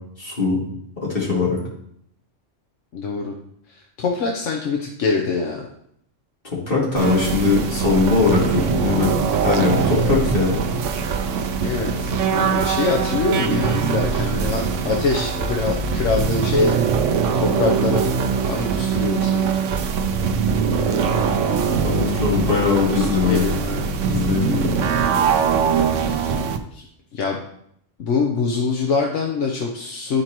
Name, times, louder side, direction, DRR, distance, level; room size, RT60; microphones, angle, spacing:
voice 1, 0.2-0.6 1.0-1.6 6.4-10.6 21.8-23.6 24.1-24.7, left 4 dB, 45° left, -5 dB, 2.6 m, -21 dB
voice 2, 2.9-3.3 3.7-5.6 11.6-16.8 17.3-18.1 18.4-19.6 22.7-24.0 26.0-26.8 27.1-27.4 28.0-30.2, left 4 dB, 80° left, 1 dB, 1.1 m, -24 dB
sound 1, 7.0-26.6, right 6 dB, 80° right, 1.0 m, -22 dB
12.0 x 4.6 x 3.0 m, 0.73 s
omnidirectional pair, 1.3 m